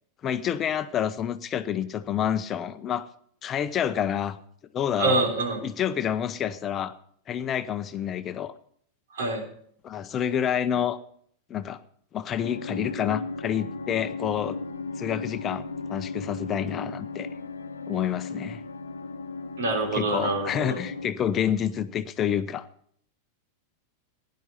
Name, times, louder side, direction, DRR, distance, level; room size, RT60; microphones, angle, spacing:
voice 1, 0.2-3.1 3.4-4.4 4.7-5.2 5.6-6.9 7.3-8.5 9.8-11.0 11.5-11.8 12.1-14.6 15.0-17.3 17.9-18.6 19.9-22.7, left 9 dB, 30° left, 11 dB, 0.8 m, -28 dB
voice 2, 5.0-5.6 9.1-9.5 19.6-20.8, right 2 dB, 65° right, 4 dB, 3.4 m, -26 dB
sound 1, 12.4-21.1, left 3 dB, 75° left, 1.0 m, -36 dB
16.5 x 10.5 x 4.1 m, 0.62 s
figure-of-eight pair, 90°, 0 cm